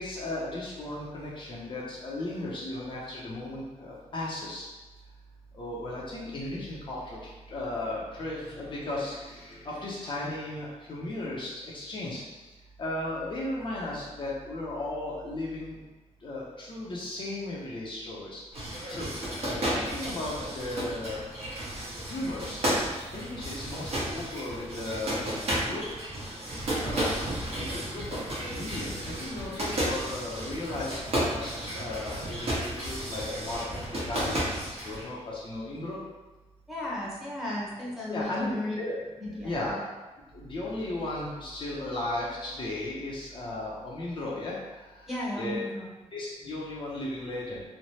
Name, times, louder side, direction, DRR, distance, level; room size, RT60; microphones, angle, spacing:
voice 1, 0.0-4.7 5.5-7.2 7.5-12.2 12.8-15.8 16.2-18.4 18.9-19.1 19.4-21.2 22.1-22.6 23.1-26.1 26.8-27.1 27.6-33.6 33.9-34.4 34.8-36.0 38.1-39.0 39.3-39.8 40.3-44.6 44.9-45.1 45.4-45.6 46.1-47.6, left 2 dB, 45° left, -5 dB, 0.6 m, -35 dB
sound 1, 18.5-35.1, right 1 dB, 60° right, 1.0 m, -33 dB
voice 2, 36.7-38.7 39.2-39.8 45.1-45.9, left 1 dB, 5° right, -7 dB, 0.8 m, -34 dB
3.1 x 2.1 x 2.7 m, 1.1 s
wide cardioid pair, 120°, 12 cm